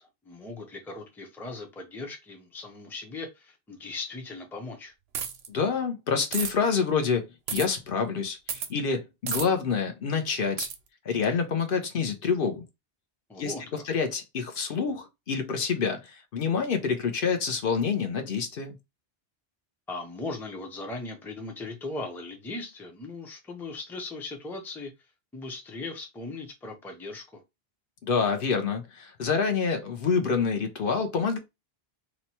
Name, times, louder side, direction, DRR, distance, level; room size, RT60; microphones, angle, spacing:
voice 1, 0.0-4.9 13.3-13.8 19.9-24.9 25.3-27.4, left 3 dB, 5° left, 0.5 m, -38 dB
sound 1, 5.1-5.5 6.3-6.5 7.5-7.7 8.5-8.7 9.3-9.5 10.6-10.8, right 7 dB, 85° right, 0.8 m, -31 dB
voice 2, 5.5-10.7 11.0-12.6 13.4-18.8 28.0-31.4, left 5 dB, 65° left, 0.8 m, -27 dB
3.0 x 2.2 x 4.1 m
omnidirectional pair, 1.0 m